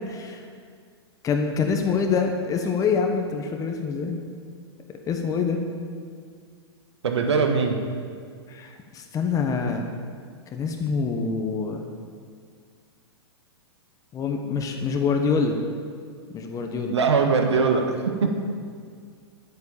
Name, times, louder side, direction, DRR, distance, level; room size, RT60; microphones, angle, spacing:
voice 1, 0.1-0.5 1.2-4.2 5.1-5.6 8.5-9.8 10.5-11.9 14.1-15.6 16.3-17.0 18.2-18.3, left 5 dB, 25° left, 4 dB, 1.3 m, -25 dB
voice 2, 7.0-7.8 16.9-18.3, right 5 dB, 85° right, 4 dB, 1.6 m, -21 dB
11.0 x 9.4 x 7.2 m, 2.1 s
hypercardioid pair, 120°, 14 cm